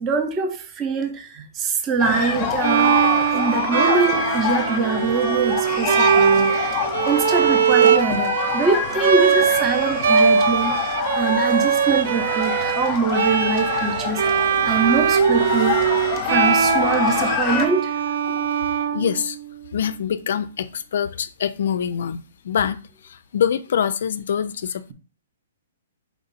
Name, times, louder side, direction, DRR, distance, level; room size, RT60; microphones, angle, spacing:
voice 1, 0.0-2.9 3.3-6.5 7.1-15.8 16.3-18.2, right 4 dB, 20° right, 0.7 m, -24 dB
sound 1, 2.0-17.7, left 6 dB, 30° left, 0.7 m, -26 dB
Bowed string instrument, 2.6-19.5, right 7 dB, 65° right, 0.4 m, -21 dB
voice 2, 18.9-19.4 19.7-22.2 22.4-22.8 23.0-24.9, left 8 dB, 65° left, 0.3 m, -24 dB
4.5 x 2.6 x 4.0 m
hypercardioid pair, 145°, 0 cm